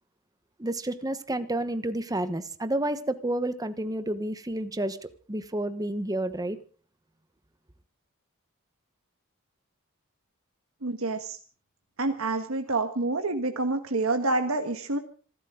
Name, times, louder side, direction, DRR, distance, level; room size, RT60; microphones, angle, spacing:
voice 1, 0.6-6.6, right 1 dB, 15° right, 11 dB, 1.1 m, -30 dB
voice 2, 10.8-11.4 12.0-15.0, right 2 dB, 75° right, 6 dB, 1.5 m, -27 dB
26.5 x 13.0 x 3.8 m, 0.40 s
head